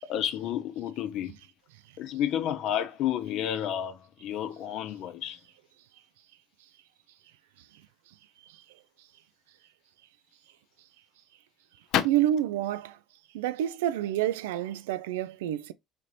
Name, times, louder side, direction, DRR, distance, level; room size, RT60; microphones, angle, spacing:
voice 1, 0.1-1.4 2.0-5.4 11.9-12.0, left 10 dB, 65° left, 0.6 m, -30 dB
voice 2, 12.0-13.0 13.3-15.7, right 12 dB, 85° right, 0.3 m, -28 dB
4.3 x 2.5 x 3.1 m
supercardioid pair, 75°, 0 cm